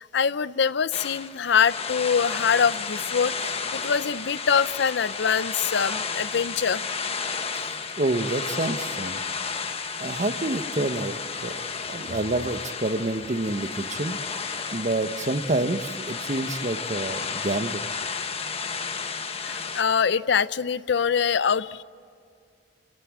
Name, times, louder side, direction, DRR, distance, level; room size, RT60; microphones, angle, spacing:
voice 1, 0.0-6.8 19.4-21.8, left 6 dB, 65° left, 17 dB, 0.5 m, -24 dB
sound 1, 0.9-19.8, left 5 dB, 35° left, 1.2 m, -32 dB
voice 2, 8.0-9.2 10.0-11.2 11.4-11.6 11.9-17.8, right 2 dB, 40° right, 10 dB, 1.1 m, -28 dB
29.5 x 16.5 x 9.6 m, 2.3 s
head